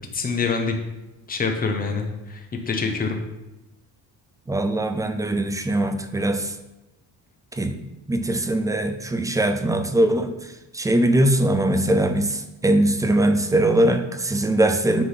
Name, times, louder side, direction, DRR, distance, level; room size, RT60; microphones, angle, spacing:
voice 1, 0.1-0.7 1.3-3.2, left 4 dB, 20° left, 4 dB, 1.0 m, -25 dB
voice 2, 4.5-6.5 7.5-7.8 8.1-10.3 10.7-15.0, right 1 dB, 10° right, 8 dB, 0.4 m, -21 dB
9.5 x 3.9 x 5.7 m, 0.99 s
cardioid pair, 165°, 39 cm